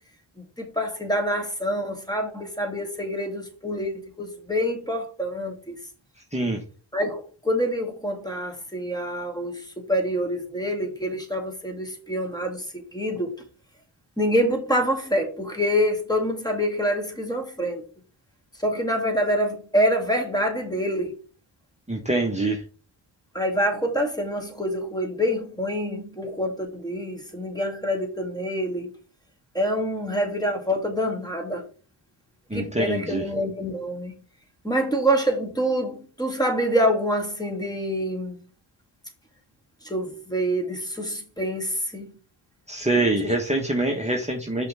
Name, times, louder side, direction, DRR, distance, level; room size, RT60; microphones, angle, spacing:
voice 1, 0.6-5.8 6.9-13.4 14.2-17.8 18.6-21.2 23.3-28.9 29.5-31.7 32.5-34.2 34.6-38.4 39.8-42.1, equal, 10° left, 2.0 m, -26 dB
voice 2, 6.3-6.6 21.9-22.6 32.5-33.2 42.7-44.7, right 2 dB, 15° right, 1.1 m, -25 dB
5.5 x 3.4 x 5.5 m
cardioid pair, 55°, 47 cm